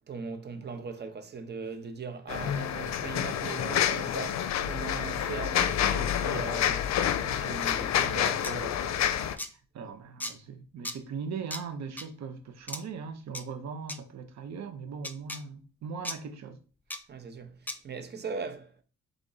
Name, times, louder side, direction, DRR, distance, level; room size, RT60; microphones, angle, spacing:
voice 1, 0.1-6.9 7.2-9.1 17.1-18.7, right 5 dB, 35° right, 0.8 m, -39 dB
sound 1, 2.3-9.3, left 10 dB, 65° left, 0.5 m, -28 dB
sound 2, 8.4-8.5 9.4-9.5 10.2-10.3 10.8-11.0 11.5-11.6 12.0-12.1 12.7-12.8 13.3-13.4 13.9-14.0 15.0-15.4 16.0-16.2 16.9-17.0 17.7-17.8, left 1 dB, 5° left, 0.4 m, -36 dB
voice 2, 9.7-16.6, right 5 dB, 65° right, 0.9 m, -39 dB
3.6 x 3.4 x 3.9 m
cardioid pair, 90°, 30 cm